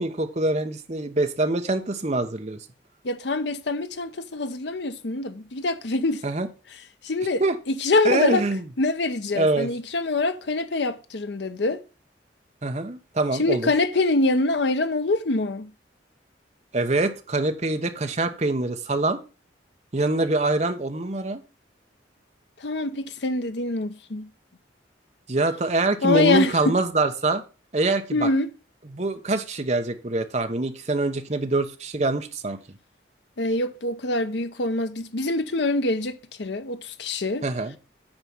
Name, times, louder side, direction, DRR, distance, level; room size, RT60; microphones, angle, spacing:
voice 1, 0.0-2.6 6.2-6.5 7.4-7.6 8.0-8.6 9.3-9.7 12.6-13.7 16.7-19.2 19.9-21.4 25.3-27.4 27.7-28.3 28.9-32.6 37.4-37.8, right 2 dB, 35° right, 0.9 m, -24 dB
voice 2, 3.0-6.2 7.0-7.4 7.7-8.4 8.8-11.8 13.4-15.7 22.6-24.3 26.0-26.8 28.1-28.5 33.4-37.4, left 2 dB, 65° left, 0.7 m, -24 dB
8.9 x 4.8 x 5.5 m
head